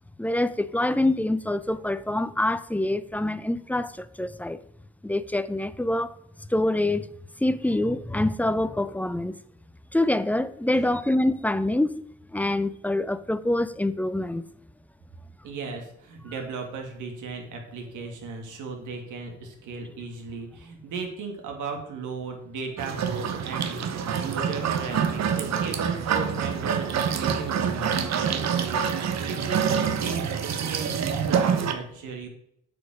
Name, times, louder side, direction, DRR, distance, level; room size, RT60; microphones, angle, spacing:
voice 1, 0.2-4.6 5.0-6.2 6.5-7.1 7.4-9.4 9.9-12.0 12.3-14.4, left 1 dB, 5° left, 0.5 m, -25 dB
voice 2, 15.4-32.3, right 4 dB, 80° right, 2.3 m, -36 dB
sound 1, 22.8-31.7, right 7 dB, 60° right, 1.0 m, -26 dB
8.1 x 5.3 x 6.3 m
cardioid pair, 90°, 30 cm